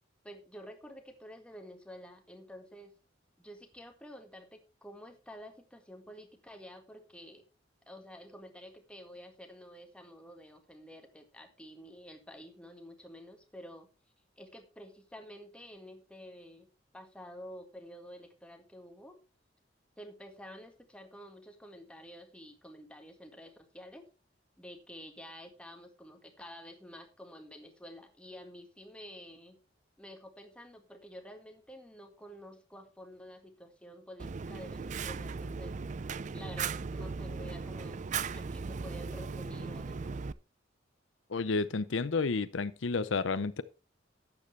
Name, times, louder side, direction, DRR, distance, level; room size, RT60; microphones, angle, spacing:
voice 1, 0.2-2.9 3.4-7.4 7.9-13.9 14.4-16.7 16.9-19.2 20.0-24.1 24.6-29.6 30.0-35.8 36.3-40.2, equal, 5° left, 1.8 m, -50 dB
Fire, 34.2-40.3, right 5 dB, 40° right, 0.4 m, -37 dB
voice 2, 41.3-43.6, left 4 dB, 80° left, 0.6 m, -31 dB
12.0 x 9.2 x 3.3 m
head